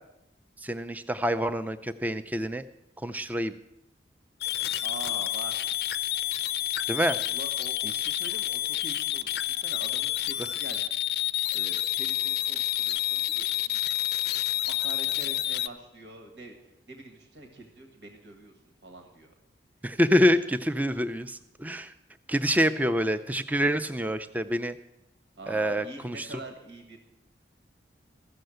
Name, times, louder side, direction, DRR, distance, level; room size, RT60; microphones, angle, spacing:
voice 1, 0.6-2.6 3.0-3.5 6.9-7.2 19.8-21.9 22.3-24.8 25.5-26.3, equal, 10° right, 11 dB, 0.4 m, -26 dB
sound 1, 4.4-15.7, left 12 dB, 60° left, 0.4 m, -29 dB
voice 2, 4.8-5.8 7.2-11.0 11.5-13.8 14.5-18.5 18.8-19.3 20.1-20.2 22.8-22.9 23.5-23.6 25.4-27.0, right 2 dB, 80° right, 4 dB, 1.7 m, -45 dB
14.5 x 6.6 x 7.8 m, 0.86 s
head